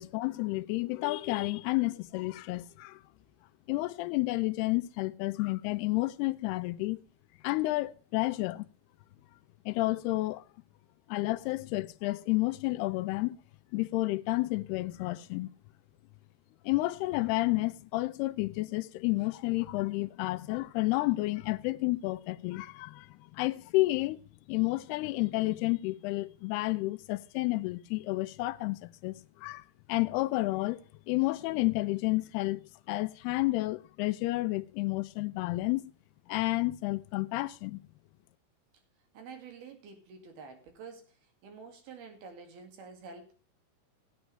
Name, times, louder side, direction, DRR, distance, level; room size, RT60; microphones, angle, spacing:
voice 1, 0.0-3.0 3.7-7.0 7.4-8.7 9.7-10.4 11.1-13.4 13.7-15.5 16.6-24.2 24.5-29.6 29.9-32.6 32.9-35.9 36.3-37.8, left 20 dB, 80° left, 2.6 m, -31 dB
voice 2, 39.1-41.1 41.4-43.3, right 5 dB, 65° right, 4.1 m, -48 dB
17.0 x 9.3 x 3.2 m
omnidirectional pair, 4.9 m